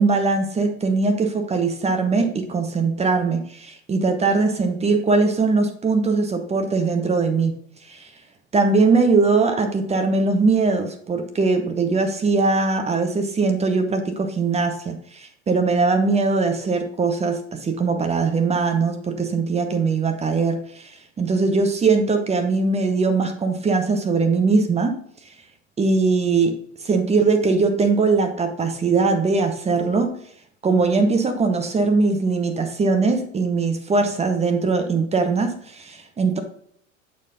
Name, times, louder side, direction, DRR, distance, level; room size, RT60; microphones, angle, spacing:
voice 1, 0.0-7.6 7.9-8.1 8.5-20.9 21.2-25.0 25.8-30.1 30.6-36.4, right 4 dB, 15° right, 0.8 m, -21 dB
7.1 x 4.6 x 3.7 m
figure-of-eight pair, 80°, 40 cm